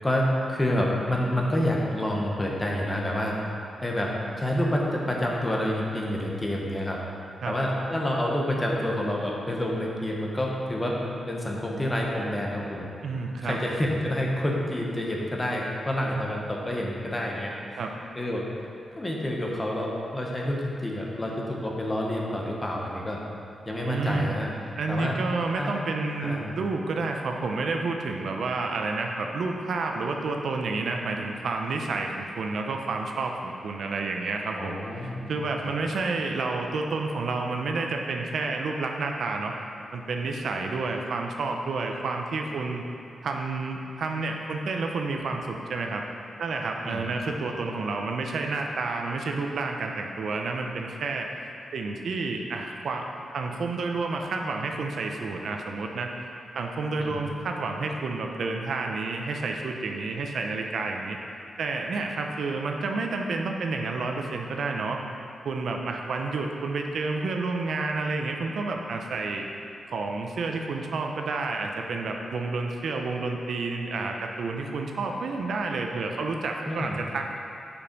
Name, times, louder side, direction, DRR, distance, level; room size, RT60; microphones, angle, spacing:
voice 1, 0.0-3.4 3.8-7.0 7.5-12.9 13.4-17.8 18.2-18.5 18.9-23.2 23.7-24.5 24.9-25.2 25.5-25.7 26.2-26.5 34.6-35.3 35.6-35.7 46.8-47.1 57.0-57.2 76.7-77.0, left 1 dB, 15° left, -2 dB, 1.0 m, -28 dB
voice 2, 13.0-13.6 17.8-17.9 23.8-24.3 24.8-39.5 39.9-42.8 43.2-46.0 46.4-51.3 51.7-56.1 56.5-61.2 61.6-65.0 65.4-69.5 69.9-77.4, right 3 dB, 70° right, 2 dB, 0.6 m, -30 dB
7.2 x 5.3 x 5.3 m, 2.5 s
wide cardioid pair, 135°, 0 cm